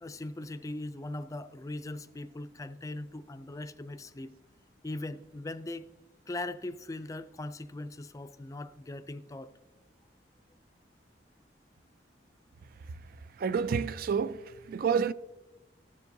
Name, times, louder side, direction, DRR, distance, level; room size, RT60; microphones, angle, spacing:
voice 1, 0.0-4.3 4.8-5.9 6.3-9.5, left 2 dB, 20° left, 0.4 m, -40 dB
voice 2, 13.4-15.1, right 6 dB, 55° right, 0.3 m, -29 dB
14.5 x 7.1 x 2.7 m
head